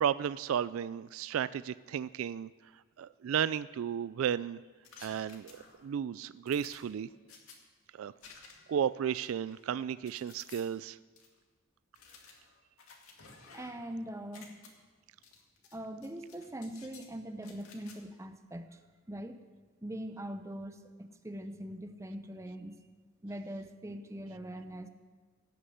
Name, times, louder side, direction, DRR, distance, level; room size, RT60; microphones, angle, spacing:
voice 1, 0.0-2.5 3.0-4.6 5.0-7.1 7.9-8.1 8.7-11.0, right 8 dB, 70° right, 16 dB, 0.3 m, -33 dB
sound 1, 4.8-5.9 6.5-7.6 8.2-8.8 9.1-10.6 11.2-11.3 11.9-13.9 14.2-14.7 15.2-15.8 16.0-17.1 17.4-18.0, left 5 dB, 80° left, 2.2 m, -55 dB
voice 2, 13.5-14.5 15.7-18.8 19.1-19.4 19.8-22.8 23.2-24.9, right 1 dB, 15° right, 8 dB, 0.7 m, -42 dB
18.0 x 6.6 x 7.7 m, 1.5 s
head